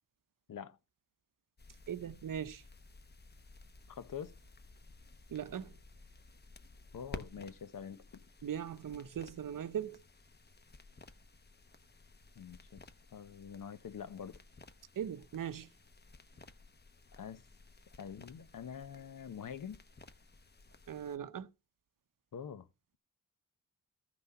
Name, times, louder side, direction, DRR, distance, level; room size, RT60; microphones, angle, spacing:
sound 1, 1.6-21.2, left 3 dB, 30° left, 0.9 m, -55 dB
voice 1, 1.9-2.6 5.3-5.7 8.4-10.0 15.0-15.7 20.9-21.5, right 9 dB, 85° right, 0.8 m, -39 dB
voice 2, 3.9-4.3 6.9-8.2 12.4-12.8 13.1-14.4 17.2-17.4 18.0-19.8 22.3-22.7, left 7 dB, 80° left, 0.9 m, -45 dB
14.0 x 6.1 x 5.9 m
wide cardioid pair, 170°, 32 cm